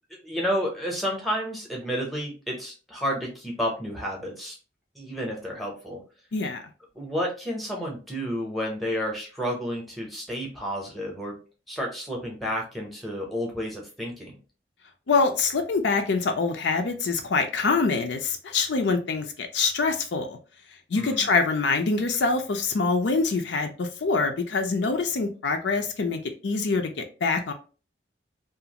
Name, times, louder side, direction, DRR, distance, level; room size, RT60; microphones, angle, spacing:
voice 1, 0.1-4.6 4.9-6.0 6.9-11.3 11.7-14.4 20.9-21.3, equal, ahead, -2 dB, 0.7 m, -31 dB
voice 2, 6.3-6.6 15.1-20.4 20.9-27.5, left 4 dB, 70° left, 5 dB, 0.5 m, -25 dB
2.5 x 2.4 x 2.8 m, 0.35 s
head